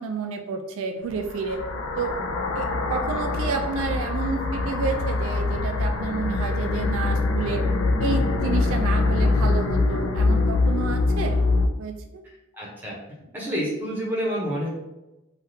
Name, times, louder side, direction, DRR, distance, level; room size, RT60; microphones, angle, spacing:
voice 1, 0.0-1.6 2.0-2.2 2.6-7.6 8.0-11.5 11.8-12.2, right 4 dB, 80° right, 6 dB, 0.3 m, -30 dB
sound 1, 1.1-11.7, left 3 dB, 85° left, 0.4 m, -24 dB
voice 2, 12.6-12.9 13.3-14.7, equal, 10° right, -4 dB, 0.8 m, -28 dB
3.4 x 2.3 x 2.7 m, 0.95 s
head